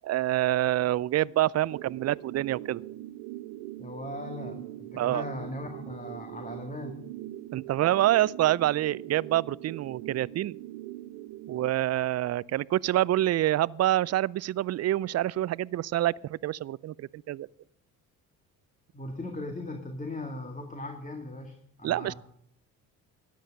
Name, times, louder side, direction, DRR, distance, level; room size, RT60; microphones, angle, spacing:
voice 1, 0.0-2.8 5.0-5.2 7.5-10.6 11.5-17.5 21.8-22.1, right 14 dB, 40° right, 0.4 m, -26 dB
sound 1, 1.7-11.7, right 15 dB, 75° right, 0.8 m, -42 dB
voice 2, 3.8-7.0 18.9-22.1, left 2 dB, 20° left, 2.0 m, -38 dB
13.0 x 10.0 x 6.4 m
hypercardioid pair, 55°, 43 cm